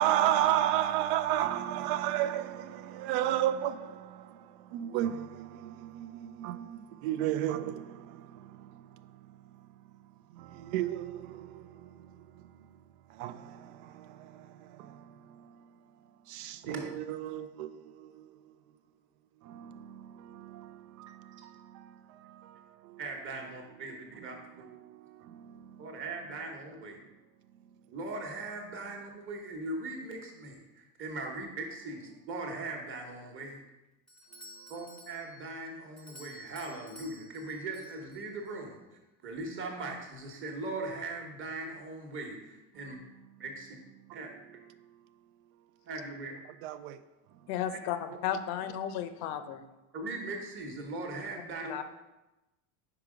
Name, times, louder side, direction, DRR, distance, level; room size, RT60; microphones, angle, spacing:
voice 1, 0.0-8.8 10.3-12.2 13.1-15.5 16.3-18.3 19.4-23.0 24.7-25.8 46.6-47.0, right 12 dB, 85° right, 0.5 m, -34 dB
voice 2, 23.0-24.6 25.8-27.0 27.9-33.6 34.7-38.8 39.2-43.0 43.4-43.7 44.1-44.3 45.9-46.3 47.7-47.8 48.1-48.2 49.9-51.7, right 2 dB, 30° right, 1.0 m, -40 dB
Doorbell, 34.1-38.5, left 1 dB, ahead, 0.6 m, -53 dB
voice 3, 47.5-49.6 51.7-51.8, left 9 dB, 65° left, 0.6 m, -34 dB
4.8 x 4.7 x 4.9 m
cardioid pair, 150°, 42 cm